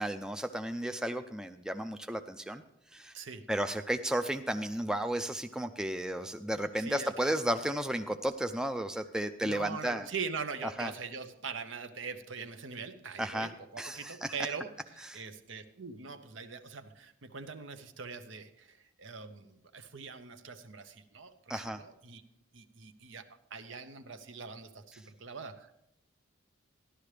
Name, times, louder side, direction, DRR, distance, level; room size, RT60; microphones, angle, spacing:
voice 1, 0.0-2.6 2.9-3.1 3.5-10.1 10.8-10.9 13.2-13.5 13.8-14.3 15.1-15.2 21.5-21.8, right 1 dB, 5° right, 7 dB, 0.3 m, -33 dB
voice 2, 3.1-3.5 6.7-7.3 9.4-22.2 22.5-25.7, right 5 dB, 75° right, 9 dB, 0.8 m, -42 dB
13.5 x 11.5 x 3.3 m, 0.79 s
head